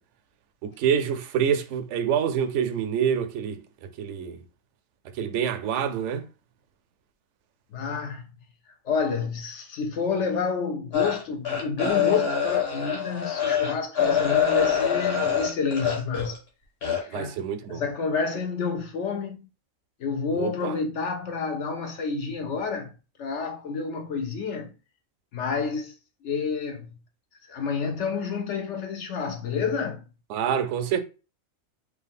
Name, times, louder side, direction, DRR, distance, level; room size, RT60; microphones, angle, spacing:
voice 1, 0.6-3.6 4.0-4.4 5.2-6.2 17.1-17.8 20.3-20.7 30.3-31.0, right 8 dB, 70° right, 0.8 m, -26 dB
voice 2, 7.7-8.2 8.8-16.4 17.0-17.4 17.7-19.5 20.0-22.9 23.2-24.7 25.3-26.0 26.2-26.9 27.5-30.0, left 5 dB, 65° left, 0.8 m, -29 dB
sound 1, 10.9-16.4 16.8-17.0, left 8 dB, 50° left, 1.5 m, -25 dB
4.6 x 2.4 x 3.5 m
omnidirectional pair, 1.4 m